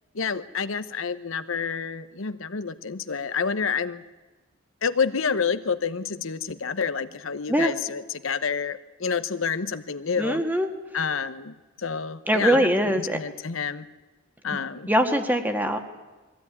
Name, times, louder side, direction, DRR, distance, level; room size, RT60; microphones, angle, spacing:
voice 1, 0.1-4.0 4.8-10.4 10.9-13.9 14.4-14.9, left 6 dB, 70° left, 12 dB, 0.9 m, -28 dB
voice 2, 10.2-10.7 12.3-13.2 14.9-15.8, equal, 10° right, 6 dB, 1.6 m, -22 dB
21.5 x 15.5 x 9.7 m, 1.2 s
head